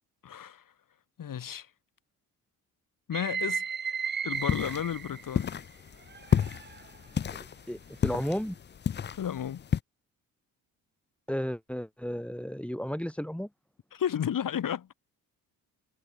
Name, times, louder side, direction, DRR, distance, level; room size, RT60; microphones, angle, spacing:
voice 1, 0.2-0.6 1.2-1.7 3.1-3.6 4.2-5.6 9.1-9.6 13.9-14.9, left 9 dB, 50° left, 1.8 m, -32 dB
sound 1, 3.1-5.5 6.1-7.0, right 6 dB, 25° right, 0.7 m, -35 dB
sound 2, 4.3-9.8, left 8 dB, 25° left, 0.5 m, -31 dB
voice 2, 7.7-8.5 11.3-13.5, equal, 5° left, 4.7 m, -33 dB
hypercardioid pair, 50°, 42 cm